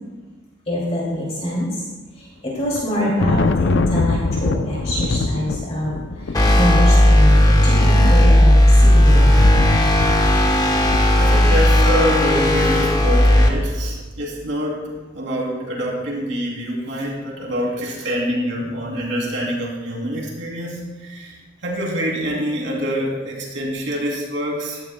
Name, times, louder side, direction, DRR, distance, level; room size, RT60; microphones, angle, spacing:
voice 1, 0.7-1.7 2.2-9.4, equal, 35° left, -5 dB, 2.6 m, -24 dB
Thunder, 2.6-12.0, left 3 dB, 75° left, 0.5 m, -24 dB
sound 1, 6.3-13.5, left 1 dB, 20° left, 1.0 m, -14 dB
voice 2, 11.2-21.4 21.6-24.8, equal, 75° right, -3 dB, 3.1 m, -25 dB
16.0 x 13.0 x 2.2 m, 1.2 s
head